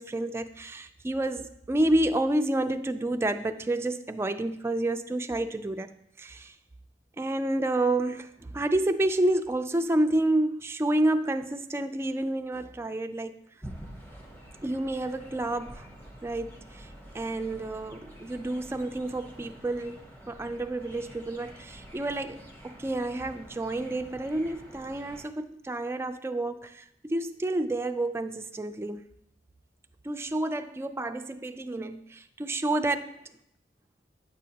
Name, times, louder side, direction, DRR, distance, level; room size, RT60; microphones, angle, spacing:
voice 1, 0.0-6.5 7.2-13.4 14.6-15.9 16.2-16.6 17.1-20.0 20.3-22.4 22.6-29.0 30.0-33.1, right 1 dB, 15° right, 0.3 m, -29 dB
sound 1, 13.6-25.2, right 1 dB, 10° left, 0.9 m, -47 dB
8.9 x 6.3 x 2.8 m
head